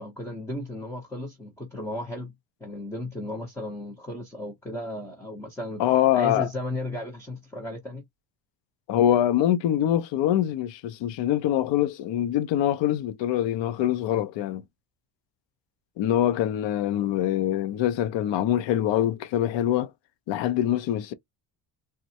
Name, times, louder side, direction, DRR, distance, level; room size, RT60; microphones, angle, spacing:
voice 1, 0.0-2.3 2.6-5.8 6.1-8.0, left 1 dB, 5° left, 0.5 m, -35 dB
voice 2, 5.8-6.5 8.9-14.6 16.0-19.9 20.3-21.1, left 11 dB, 65° left, 0.6 m, -24 dB
3.6 x 2.1 x 2.7 m
cardioid pair, 175°, 48 cm